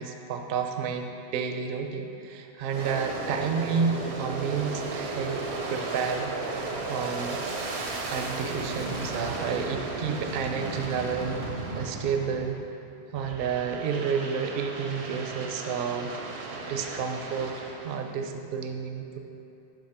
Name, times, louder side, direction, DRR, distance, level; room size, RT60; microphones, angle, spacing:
voice 1, 0.0-5.4 5.7-6.3 6.9-7.4 8.1-11.4 11.7-12.6 13.1-16.1 16.7-19.2, right 6 dB, 65° right, 5 dB, 0.7 m, -30 dB
Aircraft, 2.6-12.7 13.2-18.1, right 3 dB, 85° right, 1.0 m, -35 dB
6.4 x 5.7 x 4.3 m, 2.8 s
omnidirectional pair, 1.1 m